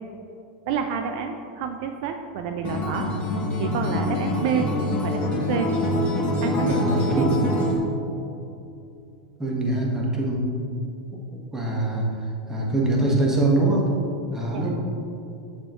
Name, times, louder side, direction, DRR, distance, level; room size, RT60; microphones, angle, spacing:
voice 1, 0.7-3.1 3.6-4.7 5.0-5.7 6.4-7.3 14.5-14.7, right 7 dB, 60° right, 6 dB, 0.4 m, -29 dB
Acoustic guitar, 2.6-7.8, left 1 dB, 35° left, 1.4 m, -25 dB
voice 2, 6.6-7.4 9.4-10.5 11.3-12.0 12.5-13.8 14.3-14.7, right 2 dB, 10° right, -3 dB, 1.5 m, -23 dB
7.1 x 6.8 x 3.1 m, 2.6 s
hypercardioid pair, 105°, 4 cm